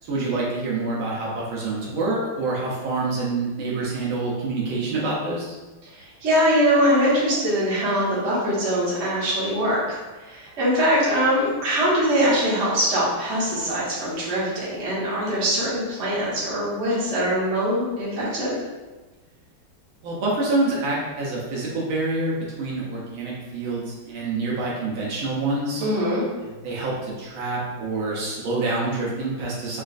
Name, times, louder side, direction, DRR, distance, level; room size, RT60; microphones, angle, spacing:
voice 1, 0.0-5.6 20.0-25.9 26.4-29.8, right 2 dB, 75° right, -5 dB, 1.5 m, -27 dB
voice 2, 5.9-18.5 25.8-26.3, equal, 45° right, -9 dB, 1.2 m, -22 dB
4.1 x 2.4 x 2.4 m, 1.2 s
omnidirectional pair, 2.3 m